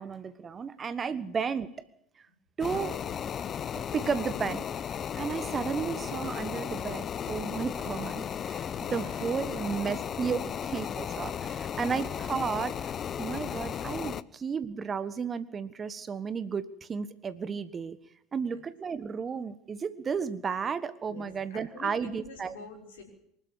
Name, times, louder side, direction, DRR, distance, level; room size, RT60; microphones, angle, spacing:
voice 1, 0.0-1.7 2.6-2.9 3.7-4.6 5.1-12.9 13.2-18.0 18.3-22.5, right 6 dB, 30° right, 14 dB, 1.4 m, -33 dB
sound 1, 2.6-14.2, left 8 dB, 35° left, 0.9 m, -35 dB
voice 2, 2.7-3.2 8.9-10.0 18.3-18.6 21.1-23.0, left 4 dB, 70° left, 3 dB, 6.3 m, -48 dB
24.5 x 12.5 x 9.7 m, 0.74 s
figure-of-eight pair, 70°, 0 cm